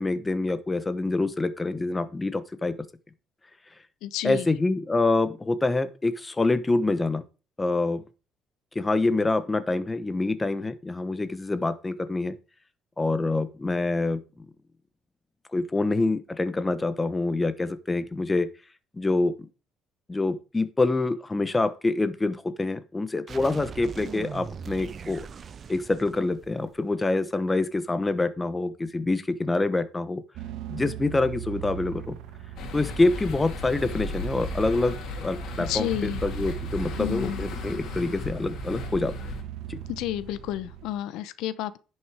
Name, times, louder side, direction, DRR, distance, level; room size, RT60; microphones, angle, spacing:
voice 1, 0.0-2.7 4.2-7.2 7.6-8.0 8.7-12.4 13.0-14.2 15.5-18.5 19.0-19.3 20.1-25.3 25.7-30.2 30.7-32.2 32.7-39.1 39.7-39.8, left 2 dB, 15° left, 1.0 m, -26 dB
voice 2, 4.0-4.5 35.7-36.2 37.0-37.4 39.9-41.8, left 13 dB, 90° left, 0.8 m, -31 dB
sound 1, 23.3-27.0, right 6 dB, 40° right, 0.7 m, -40 dB
sound 2, 30.4-40.9, right 12 dB, 85° right, 1.3 m, -38 dB
sound 3, 32.6-39.4, left 4 dB, 65° left, 2.9 m, -36 dB
10.5 x 6.5 x 4.8 m
cardioid pair, 120°, 0 cm